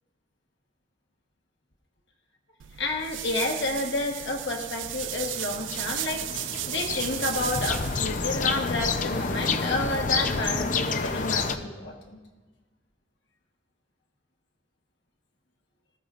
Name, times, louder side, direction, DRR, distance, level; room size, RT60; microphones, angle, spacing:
sound 1, 2.6-8.0, right 14 dB, 75° right, 0.4 m, -34 dB
voice 1, 2.8-6.3 6.6-12.2, left 2 dB, 65° left, 1 dB, 1.3 m, -30 dB
sound 2, 4.6-11.6, left 4 dB, 45° left, 0.7 m, -29 dB
19.5 x 14.5 x 2.5 m, 1.4 s
head